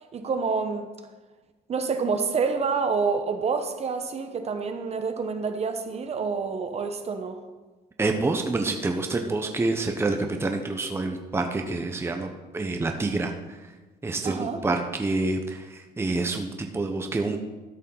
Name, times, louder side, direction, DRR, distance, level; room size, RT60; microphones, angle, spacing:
voice 1, 0.1-0.9 1.7-7.4 14.2-14.6, right 5 dB, 40° right, 7 dB, 1.0 m, -28 dB
voice 2, 8.0-13.3 14.0-17.4, right 3 dB, 15° right, 4 dB, 0.8 m, -27 dB
13.0 x 5.4 x 5.5 m, 1.2 s
cardioid pair, 110°, 17 cm